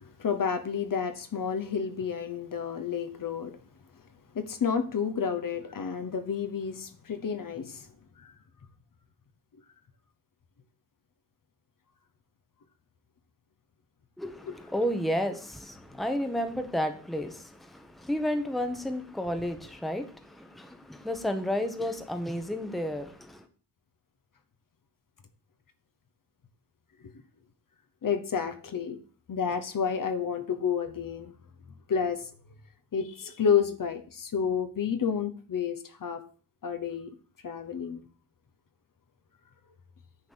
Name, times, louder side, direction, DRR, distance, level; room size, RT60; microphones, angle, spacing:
voice 1, 0.0-3.6 4.3-7.9 8.2-8.3 14.5-14.6 28.0-29.0 29.3-31.3 31.9-32.3 32.9-36.2 36.6-37.1 37.4-38.0, left 7 dB, 50° left, 1.0 m, -30 dB
voice 2, 14.2-23.4, equal, ahead, 0.9 m, -32 dB
9.7 x 4.0 x 6.8 m
wide cardioid pair, 150°, 41 cm